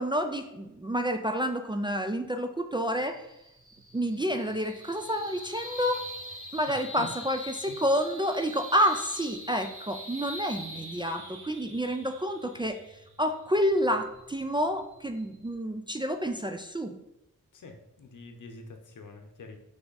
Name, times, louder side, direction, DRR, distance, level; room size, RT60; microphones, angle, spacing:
voice 1, 0.0-3.2 3.9-6.0 6.5-12.8 13.2-16.9, equal, 15° right, 5 dB, 0.3 m, -29 dB
sound 1, 2.9-15.5, equal, 40° right, 1.2 m, -44 dB
voice 2, 6.7-7.1 7.7-7.8 17.5-19.6, left 3 dB, 65° left, 5 dB, 0.8 m, -46 dB
3.5 x 3.4 x 3.9 m, 0.89 s
cardioid pair, 50°, 33 cm